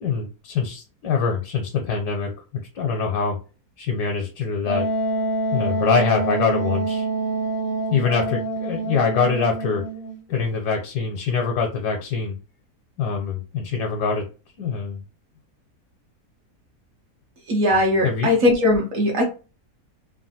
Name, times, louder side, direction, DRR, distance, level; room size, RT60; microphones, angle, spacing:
voice 1, 0.0-3.4 3.8-4.8 5.5-7.1 7.9-9.8 10.3-12.4 13.0-14.3 14.6-15.0 18.0-18.3, left 5 dB, 85° left, 2 dB, 1.2 m, -24 dB
Wind instrument woodwind instrument, 4.7-10.2, right 2 dB, 55° left, 0.4 m, -26 dB
voice 2, 17.5-19.2, left 1 dB, 60° right, 0 dB, 1.0 m, -19 dB
3.2 x 2.2 x 2.7 m, 0.33 s
omnidirectional pair, 1.7 m